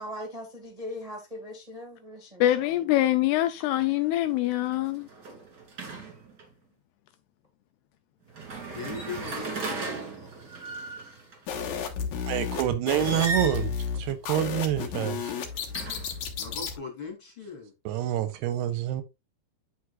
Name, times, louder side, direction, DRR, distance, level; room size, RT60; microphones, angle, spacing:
voice 1, 0.0-2.7, left 1 dB, 20° right, 1.1 m, -40 dB
voice 2, 2.4-5.1, left 14 dB, 85° left, 2.4 m, -24 dB
sound 1, 3.7-4.0 4.3-6.5 8.3-11.4 12.9-13.7 14.9-16.3, right 3 dB, 35° right, 1.8 m, -36 dB
voice 3, 8.7-9.9 15.7-15.8 16.4-17.7, left 4 dB, 35° left, 2.7 m, -39 dB
sound 2, 11.5-16.8, left 6 dB, 65° left, 2.0 m, -33 dB
voice 4, 12.3-15.3 17.9-19.0, right 11 dB, 85° right, 2.6 m, -27 dB
9.5 x 6.1 x 2.4 m
omnidirectional pair, 5.0 m